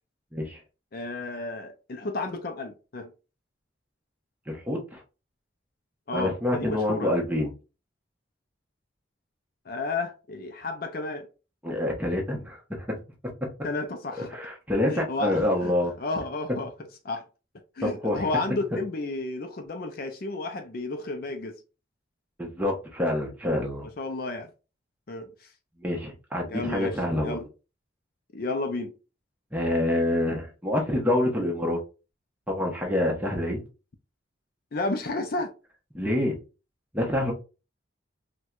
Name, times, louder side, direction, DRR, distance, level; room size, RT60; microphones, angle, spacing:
voice 1, 0.9-3.1 6.1-7.2 9.7-11.3 13.6-14.3 14.9-16.7 17.0-17.2 17.8-21.6 24.0-24.5 25.1-25.5 26.5-27.5 28.3-28.9 34.7-35.5, left 2 dB, 50° left, 0.4 m, -32 dB
voice 2, 4.5-5.0 6.1-7.5 11.6-13.0 14.3-15.9 17.8-18.3 22.4-23.9 25.8-27.4 29.5-31.8 32.5-33.6 35.9-36.3 36.9-37.3, left 1 dB, 10° right, 0.8 m, -27 dB
4.4 x 2.2 x 2.4 m
head